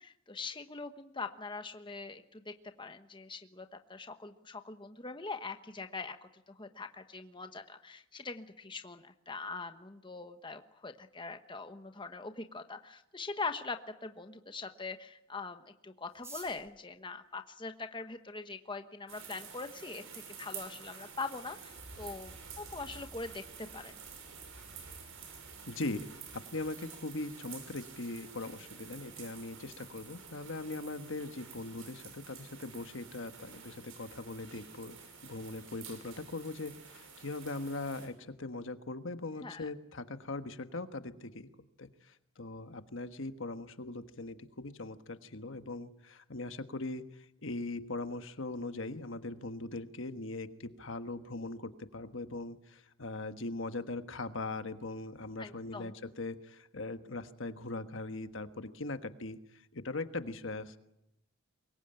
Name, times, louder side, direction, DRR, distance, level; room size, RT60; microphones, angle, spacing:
voice 1, 0.0-24.0 39.4-39.7 55.4-56.0, left 3 dB, 20° left, 7 dB, 1.1 m, -43 dB
sound 1, 16.1-18.3 19.1-19.2 19.4-19.5 19.8-20.3 20.6-20.7 20.9-21.3 21.6-21.8 22.2-22.5, right 2 dB, 10° right, 6.5 m, -53 dB
sound 2, 19.1-38.1, right 6 dB, 70° right, 6.0 m, -50 dB
voice 2, 25.6-26.1 26.3-41.5 41.8-60.8, left 2 dB, 60° left, 10 dB, 1.3 m, -40 dB
24.0 x 22.0 x 8.9 m, 0.83 s
head